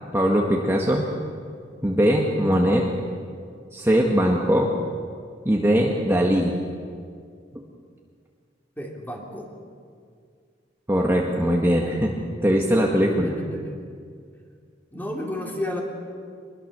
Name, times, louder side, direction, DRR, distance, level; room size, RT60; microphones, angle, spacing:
voice 1, 0.1-1.1 1.8-2.8 3.7-4.7 5.4-6.5 10.9-12.1 12.4-13.3, equal, 15° right, -1 dB, 1.7 m, -20 dB
voice 2, 8.8-9.5 13.1-13.8 14.9-15.8, left 1 dB, 10° left, -1 dB, 3.5 m, -32 dB
23.5 x 21.5 x 6.9 m, 2.2 s
head